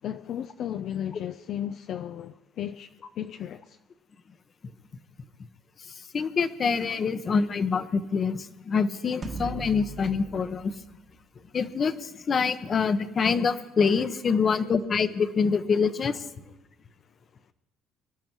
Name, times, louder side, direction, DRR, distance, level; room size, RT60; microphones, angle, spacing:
voice 1, 0.0-2.9 3.2-3.8, left 10 dB, 55° left, 0.5 m, -34 dB
voice 2, 6.1-10.7 11.5-16.2, left 5 dB, 35° left, 1.0 m, -25 dB
sound 1, 9.2-11.8, right 4 dB, 30° right, 1.5 m, -39 dB
24.5 x 12.0 x 4.5 m
cardioid pair, 125°, 0 cm